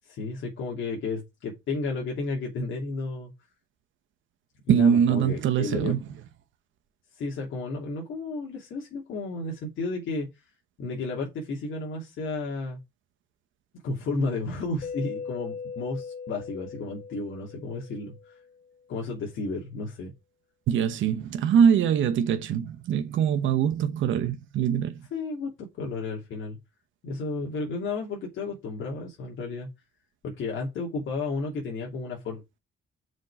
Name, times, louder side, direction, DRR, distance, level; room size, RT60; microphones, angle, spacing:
voice 1, 0.0-3.3 4.7-5.9 7.1-10.3 10.8-12.8 13.8-18.4 18.9-20.1 25.1-26.6 27.0-29.7 30.2-32.4, left 3 dB, 75° left, 2.8 m, -32 dB
voice 2, 4.7-6.0 20.7-25.0, right 8 dB, 80° right, 1.1 m, -23 dB
Mallet percussion, 14.8-18.6, left 5 dB, 45° left, 1.0 m, -39 dB
6.2 x 5.3 x 4.9 m
cardioid pair, 90°, 20 cm